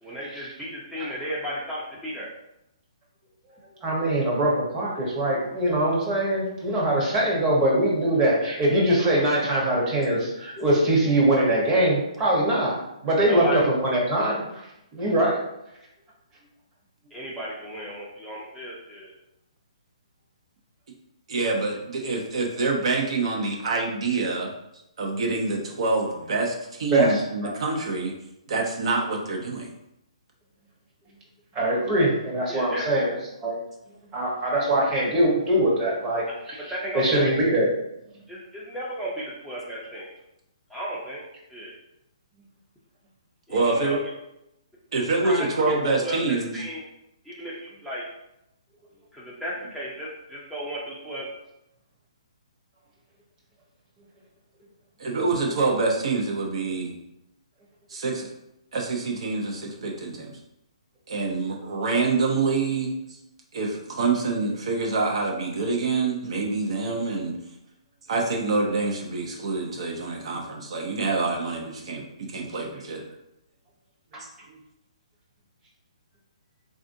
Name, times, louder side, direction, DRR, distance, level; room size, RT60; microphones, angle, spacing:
voice 1, 0.0-2.3 13.3-13.6 17.1-19.1 32.5-33.0 36.7-37.2 38.3-40.1 40.7-41.2 41.5-41.7 43.5-44.0 45.2-45.4 46.0-46.2 46.5-46.8 47.3-47.5 47.8-48.0 49.1-51.3, equal, ahead, -8 dB, 0.5 m, -34 dB
voice 2, 3.8-12.8 13.0-14.4 14.9-15.4 26.9-27.5 31.5-33.1 33.4-33.5 34.1-37.7, right 1 dB, 20° right, -4 dB, 0.9 m, -22 dB
voice 3, 21.3-24.5 25.0-28.1 28.5-29.7 43.5-44.0 44.9-46.6 55.0-56.9 57.9-58.3 58.7-60.3 61.1-62.9 63.5-67.3 68.1-73.0 74.2-74.3, right 3 dB, 60° right, 1 dB, 0.6 m, -26 dB
3.5 x 2.4 x 2.5 m, 0.85 s
hypercardioid pair, 150°, 4 cm